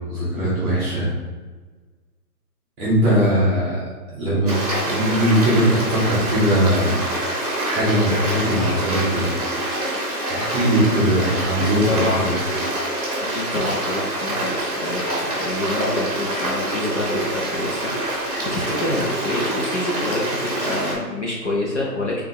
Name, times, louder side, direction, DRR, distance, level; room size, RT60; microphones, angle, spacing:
voice 1, 0.1-1.1 2.8-3.8 4.1-4.5 4.8-7.0 7.6-9.2 10.3-12.3, equal, 5° right, -8 dB, 1.2 m, -20 dB
Stream, 4.5-20.9, right 1 dB, 25° right, 1.0 m, -26 dB
voice 2, 11.6-12.3 13.2-22.2, left 2 dB, 45° left, -3 dB, 0.7 m, -27 dB
5.2 x 3.5 x 2.9 m, 1.3 s
hypercardioid pair, 175°, 48 cm